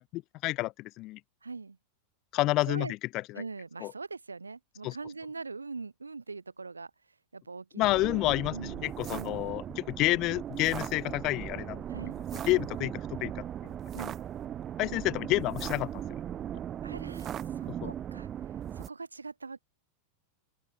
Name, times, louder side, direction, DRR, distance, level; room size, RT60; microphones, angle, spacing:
voice 1, 0.1-1.2 2.3-3.4 3.8-3.9 4.8-5.0 7.7-11.9 12.3-13.7 14.8-16.0 17.7-17.9, left 19 dB, 40° left, 1.1 m, -30 dB
voice 2, 1.4-1.8 2.7-2.9 3.3-6.9 7.3-8.1 8.5-9.5 11.9-12.2 13.9-14.2 16.8-18.3 18.7-19.6, right 4 dB, 80° right, 4.0 m, -42 dB
sound 1, 7.8-18.9, right 10 dB, 25° right, 1.3 m, -38 dB
open air
figure-of-eight pair, 90°, 0 cm